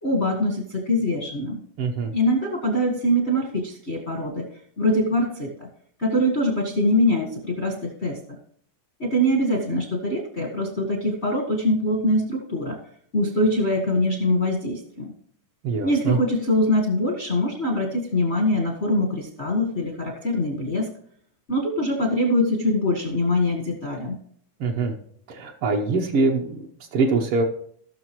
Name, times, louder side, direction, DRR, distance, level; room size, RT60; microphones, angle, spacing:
voice 1, 0.0-1.6 2.1-4.5 4.8-5.7 6.0-8.2 9.0-12.8 13.1-15.1 15.8-20.9 21.5-24.2, left 1 dB, 60° left, 0 dB, 0.6 m, -23 dB
voice 2, 1.8-2.1 15.6-16.2 24.6-24.9 25.3-27.4, right 3 dB, 80° right, 0 dB, 1.2 m, -23 dB
18.5 x 6.4 x 3.0 m, 0.63 s
omnidirectional pair, 3.7 m